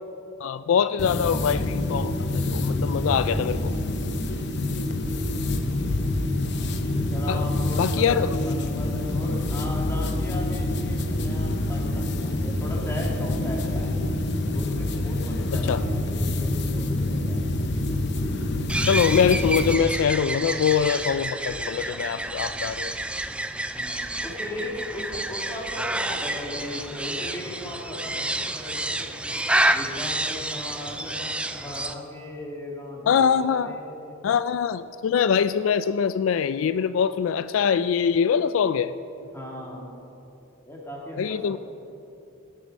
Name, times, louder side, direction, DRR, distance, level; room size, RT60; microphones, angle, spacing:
voice 1, 0.4-3.7 7.3-7.4 7.8-8.3 15.5-15.8 18.9-22.9 33.1-33.7 34.2-38.9 41.2-41.6, left 7 dB, 80° left, 14 dB, 0.3 m, -23 dB
sound 1, 1.0-19.7, left 1 dB, 60° left, 0.9 m, -26 dB
voice 2, 5.3-6.1 6.9-13.9 14.5-17.5 23.7-29.3 29.7-34.1 39.3-39.9 40.6-41.6, left 1 dB, 15° left, -3 dB, 2.3 m, -37 dB
sound 2, 18.7-31.9, right 1 dB, 5° right, 0.4 m, -29 dB
18.0 x 7.7 x 5.4 m, 2.8 s
head